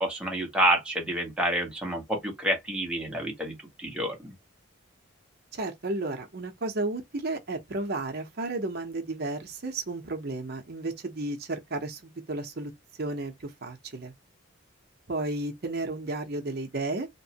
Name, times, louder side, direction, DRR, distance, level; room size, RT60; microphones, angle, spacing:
voice 1, 0.0-4.3, right 1 dB, 5° right, 0.9 m, -28 dB
voice 2, 5.5-12.7 13.0-14.1 15.1-17.1, right 2 dB, 50° right, 0.7 m, -33 dB
2.9 x 2.0 x 2.8 m
head